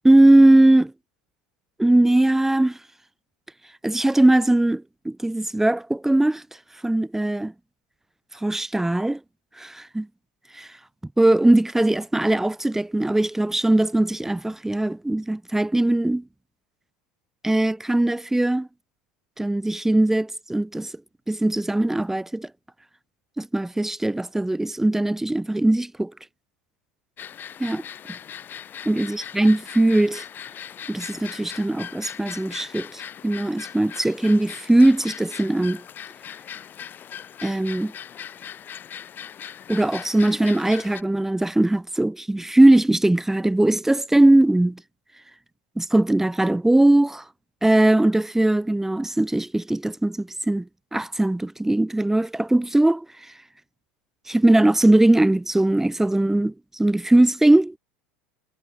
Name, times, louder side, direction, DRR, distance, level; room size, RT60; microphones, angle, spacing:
voice 1, 0.0-0.9 1.8-2.8 3.8-6.4 6.8-7.5 8.4-9.2 9.6-10.1 10.5-10.7 11.2-16.2 17.4-18.7 19.4-20.9 21.3-22.5 23.4-26.1 27.6-27.8 28.8-30.2 30.9-35.8 37.4-37.9 39.7-44.8 45.8-47.2 47.6-53.0 54.3-57.8, right 1 dB, 5° right, 1.5 m, -20 dB
sound 1, 27.2-41.0, left 9 dB, 35° left, 3.5 m, -39 dB
figure-of-eight pair, 80°, 6 cm